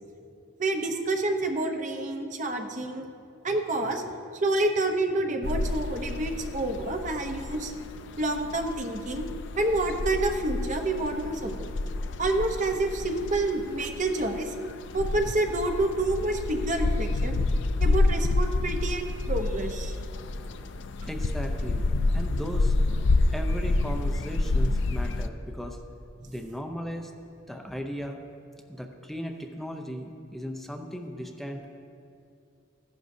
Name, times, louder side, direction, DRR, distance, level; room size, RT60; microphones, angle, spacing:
voice 1, 0.6-3.1 3.4-4.0 4.3-7.7 8.2-9.3 9.6-11.7 12.2-14.5 14.9-17.4 17.8-20.0, right 2 dB, 40° right, 4 dB, 0.8 m, -28 dB
sound 1, 5.4-25.3, left 2 dB, 60° left, 0.4 m, -29 dB
voice 2, 21.1-22.7 23.3-25.8 26.3-27.1 27.5-28.2 28.7-31.6, equal, ahead, 3 dB, 0.6 m, -37 dB
15.0 x 11.5 x 2.7 m, 2.5 s
head